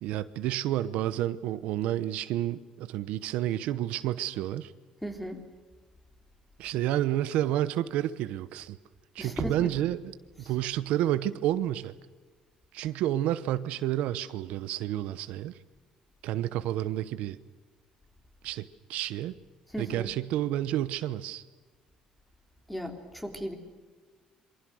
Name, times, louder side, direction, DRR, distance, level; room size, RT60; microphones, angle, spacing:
voice 1, 0.0-4.7 6.6-8.8 9.1-11.9 12.7-15.6 16.2-17.4 18.4-19.3 19.8-21.4, right 13 dB, 80° right, 13 dB, 1.0 m, -30 dB
voice 2, 5.0-5.4 9.2-9.7 10.4-10.5 19.7-20.1 22.7-23.5, equal, 5° left, 4 dB, 3.4 m, -36 dB
27.5 x 24.0 x 6.4 m, 1.4 s
cardioid pair, 145°, 2 cm